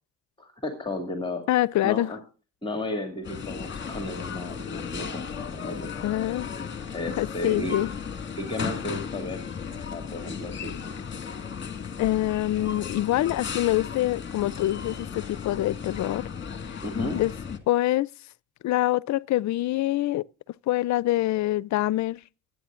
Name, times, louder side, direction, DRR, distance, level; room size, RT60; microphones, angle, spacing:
voice 1, 0.4-1.4 1.8-2.2 2.6-5.2 5.5-5.9 6.9-7.8 8.4-9.5 9.9-11.0 16.8-17.2, left 1 dB, 15° left, 2.4 m, -33 dB
voice 2, 1.5-2.1 6.0-6.5 7.2-7.9 12.0-16.2 16.7-16.8 17.1-17.3 17.7-18.1 18.6-20.2 20.7-22.2, left 15 dB, 65° left, 0.5 m, -25 dB
sound 1, 3.2-17.6, left 6 dB, 40° left, 2.0 m, -35 dB
23.5 x 9.0 x 2.5 m
cardioid pair, 90°, 30 cm